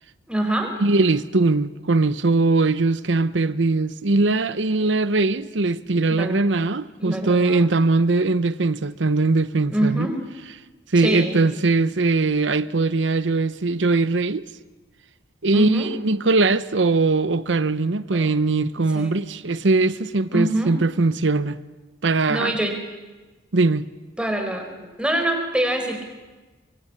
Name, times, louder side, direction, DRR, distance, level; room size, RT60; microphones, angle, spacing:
voice 1, 0.3-0.7 4.8-4.9 6.2-6.4 7.0-7.7 9.7-10.2 11.0-11.4 15.5-15.9 18.1-18.3 18.9-19.2 20.3-20.7 22.3-22.7 24.2-24.7 25.0-26.0, right 1 dB, 5° right, 4.5 m, -24 dB
voice 2, 0.8-10.1 10.9-14.4 15.4-21.6 22.0-22.6 23.5-23.9, right 3 dB, 85° right, 0.8 m, -21 dB
24.0 x 23.5 x 9.9 m
head